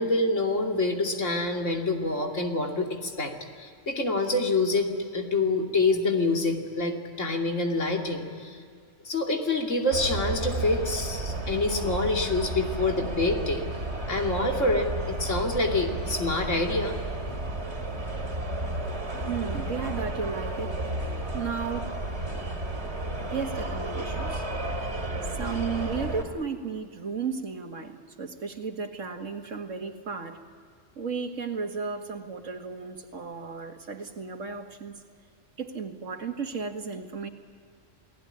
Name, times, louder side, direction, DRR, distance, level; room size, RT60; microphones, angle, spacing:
voice 1, 0.0-8.6 9.0-13.6 14.1-17.0 17.3-17.4, left 2 dB, 75° left, 2 dB, 3.0 m, -26 dB
sound 1, 9.9-26.2, right 2 dB, 60° right, 3.2 m, -32 dB
voice 2, 19.0-20.8 21.3-22.0 23.2-24.4 25.3-30.4 31.0-35.0 35.6-37.3, right 5 dB, 85° right, 5 dB, 2.2 m, -34 dB
29.5 x 18.5 x 9.9 m, 2.2 s
omnidirectional pair, 1.3 m